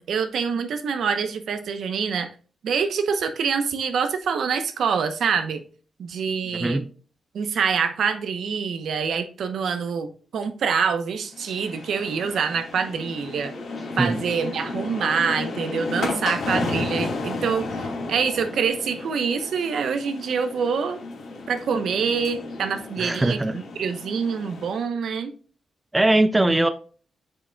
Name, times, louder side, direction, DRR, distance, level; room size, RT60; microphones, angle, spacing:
voice 1, 0.0-2.3 2.6-5.6 6.0-6.8 7.3-13.5 14.0-21.0 21.5-25.3, right 6 dB, 75° right, 0.9 m, -26 dB
voice 2, 6.5-6.8 14.0-14.2 23.0-23.6 25.9-26.7, right 2 dB, 15° right, 0.4 m, -20 dB
sound 1, 11.3-24.8, left 3 dB, 70° left, 2.6 m, -33 dB
7.7 x 6.3 x 2.3 m
wide cardioid pair, 145°, 0 cm